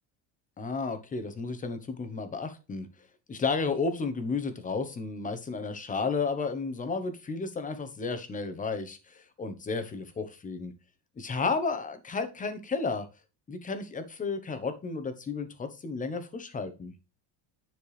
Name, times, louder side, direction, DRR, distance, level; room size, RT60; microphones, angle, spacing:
voice 1, 0.6-2.9 3.3-10.7 11.2-13.1 13.5-16.9, left 4 dB, 15° left, 10 dB, 0.9 m, -32 dB
9.9 x 4.4 x 3.2 m, 0.30 s
cardioid pair, 160°, 46 cm